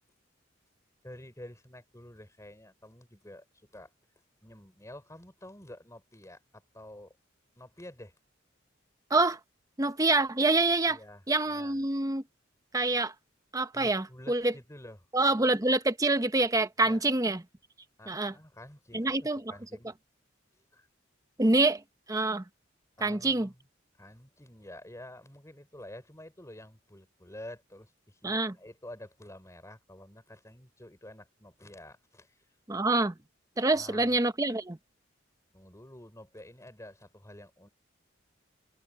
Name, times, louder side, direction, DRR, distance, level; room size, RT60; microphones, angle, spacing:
voice 1, 1.0-3.4 3.7-3.9 4.4-7.2 7.6-8.1 10.8-11.8 13.7-15.0 16.8-17.0 18.0-19.9 20.7-20.9 23.0-23.6 23.9-32.4 33.7-34.1 35.5-37.7, left 1 dB, 15° left, 4.8 m, -49 dB
voice 2, 9.8-11.0 11.3-12.2 12.7-13.1 13.5-14.5 15.1-17.4 18.1-18.3 18.9-19.5 21.4-21.8 22.1-22.4 23.0-23.5 28.2-28.5 32.7-33.1 33.6-34.8, right 2 dB, 20° right, 0.9 m, -26 dB
open air
head